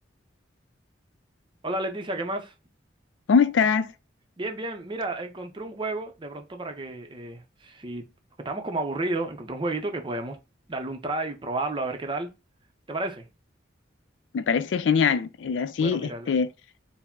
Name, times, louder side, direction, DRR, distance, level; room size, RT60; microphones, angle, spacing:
voice 1, 1.6-2.5 4.4-8.1 8.4-10.4 10.7-12.3 12.9-13.2 15.8-16.3, right 2 dB, 25° right, 0.6 m, -31 dB
voice 2, 3.3-3.9 14.3-16.5, left 6 dB, 70° left, 0.4 m, -22 dB
4.7 x 2.1 x 3.6 m
head